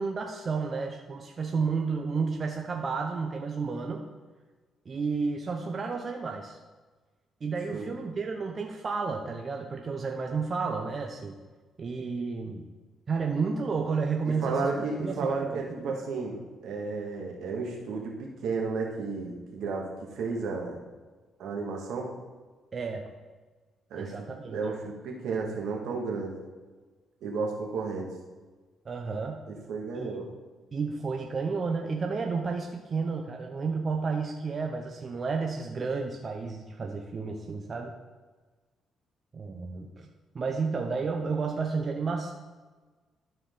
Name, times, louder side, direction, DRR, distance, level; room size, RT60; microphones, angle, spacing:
voice 1, 0.0-4.1 4.9-6.6 7.4-11.3 11.8-12.6 13.1-14.7 15.0-16.0 22.7-23.0 24.0-24.6 28.9-29.5 29.9-30.1 30.7-37.9 39.3-40.1 40.3-42.3, right 4 dB, 40° right, 2 dB, 0.8 m, -31 dB
voice 2, 14.2-19.9 20.2-20.8 21.4-22.1 23.9-26.4 27.2-28.1 29.5-30.3, right 4 dB, 80° right, -1 dB, 2.0 m, -33 dB
13.0 x 4.6 x 3.9 m, 1.3 s
cardioid pair, 90°, 0 cm